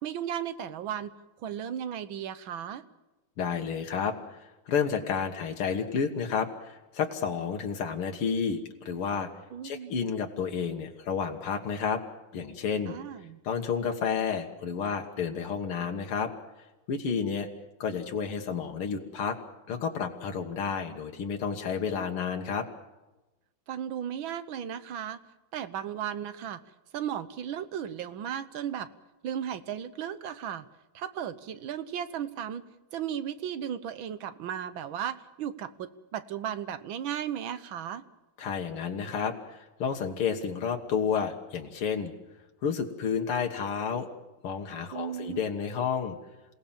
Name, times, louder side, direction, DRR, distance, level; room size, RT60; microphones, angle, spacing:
voice 1, 0.0-1.1 1.4-2.8 9.5-9.9 12.9-13.4 23.7-25.2 25.5-26.6 26.9-28.9 29.2-30.6 30.9-32.6 32.9-38.0 44.9-45.4, right 9 dB, 70° right, 13 dB, 1.7 m, -35 dB
voice 2, 3.4-9.3 9.6-12.0 12.3-12.9 13.4-16.3 16.9-17.5 17.8-19.4 19.7-22.7 38.4-42.1 42.6-44.1 44.4-46.2, left 6 dB, 85° left, 3 dB, 2.4 m, -31 dB
27.5 x 17.5 x 7.3 m, 1.1 s
omnidirectional pair, 2.4 m